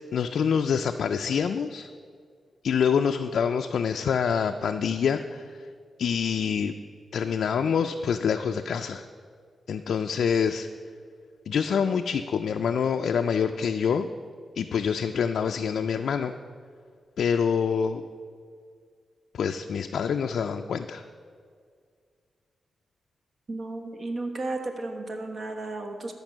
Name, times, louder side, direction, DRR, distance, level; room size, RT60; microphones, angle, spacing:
voice 1, 0.1-1.9 2.6-5.4 6.0-6.7 7.1-9.1 9.7-10.7 11.5-14.1 14.6-16.3 17.2-18.0 19.3-21.0, left 7 dB, 75° left, 6 dB, 0.3 m, -26 dB
voice 2, 23.5-26.1, right 2 dB, 50° right, 4 dB, 1.2 m, -33 dB
13.5 x 5.3 x 6.1 m, 2.1 s
cardioid pair, 85°, 0 cm